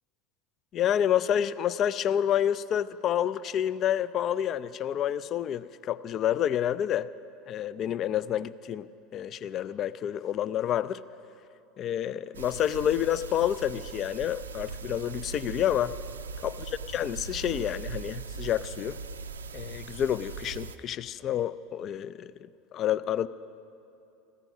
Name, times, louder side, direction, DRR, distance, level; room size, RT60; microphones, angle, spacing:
voice 1, 0.7-7.1 7.5-11.0 11.8-16.0 16.4-19.0 19.5-22.3 22.7-23.3, left 10 dB, 40° left, 17 dB, 0.3 m, -29 dB
sound 1, 12.3-20.8, right 5 dB, 75° right, 0.5 m, -40 dB
15.0 x 13.5 x 5.5 m, 2.7 s
figure-of-eight pair, 75°, 0 cm